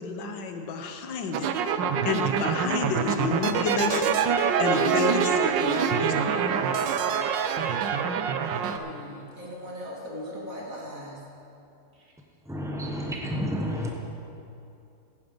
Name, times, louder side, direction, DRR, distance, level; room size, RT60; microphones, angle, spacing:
voice 1, 0.0-1.5 2.0-4.2 4.6-6.5, left 4 dB, 85° left, 1.7 m, -30 dB
sound 1, 1.3-8.8, right 7 dB, 85° right, 1.4 m, -25 dB
voice 2, 8.7-11.2 12.0-12.1, equal, 50° right, 2.6 m, -39 dB
voice 3, 12.5-13.9, equal, 5° right, 0.3 m, -30 dB
16.0 x 9.6 x 5.3 m
omnidirectional pair, 1.9 m